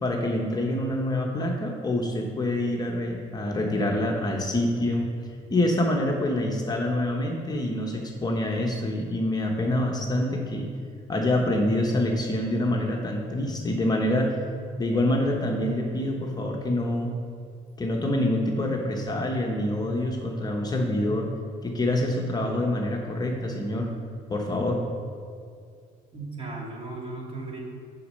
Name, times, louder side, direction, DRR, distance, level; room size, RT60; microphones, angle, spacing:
voice 1, 0.0-5.1 5.5-10.7 11.1-14.4 14.8-17.1 17.8-21.3 21.6-23.9 24.3-24.8, left 1 dB, 25° left, 0 dB, 0.9 m, -26 dB
voice 2, 26.1-27.6, right 3 dB, 35° right, -2 dB, 2.0 m, -36 dB
6.8 x 5.2 x 6.4 m, 2.2 s
cardioid pair, 110°, 17 cm